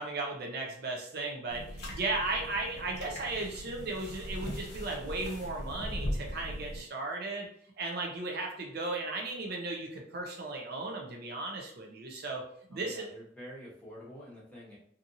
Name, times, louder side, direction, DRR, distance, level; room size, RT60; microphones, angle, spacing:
voice 1, 0.0-7.5 7.8-12.4 12.7-13.1, right 2 dB, 55° right, 1 dB, 0.6 m, -36 dB
sound 1, 1.5-6.8, equal, 60° left, 0.8 m, -39 dB
voice 2, 12.7-14.8, equal, 10° left, -7 dB, 1.0 m, -48 dB
2.8 x 2.5 x 2.6 m, 0.66 s
head